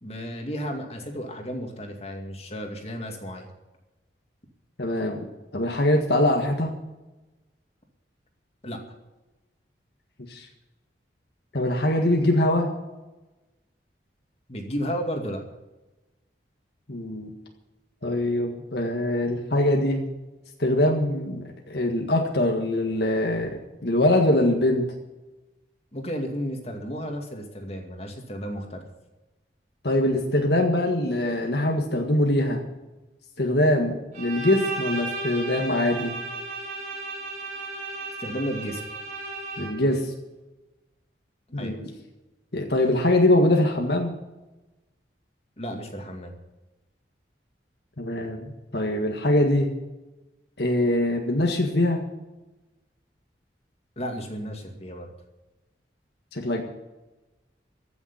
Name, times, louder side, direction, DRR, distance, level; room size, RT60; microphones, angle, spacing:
voice 1, 0.0-3.5 8.6-8.8 14.5-15.4 25.9-28.8 38.2-38.8 41.6-41.8 45.6-46.3 54.0-55.1, equal, 35° left, 3 dB, 2.3 m, -33 dB
voice 2, 4.8-5.3 5.5-6.7 10.3-10.5 11.5-12.7 16.9-17.3 18.0-20.1 20.6-24.9 29.8-32.6 33.4-36.2 39.6-40.1 41.5-41.9 42.5-44.1 48.0-49.7 50.6-52.0 56.3-56.6, left 1 dB, 65° left, 2 dB, 1.7 m, -23 dB
Bowed string instrument, 34.1-40.0, right 2 dB, 45° right, 4.7 m, -35 dB
15.5 x 7.1 x 9.9 m, 1.1 s
head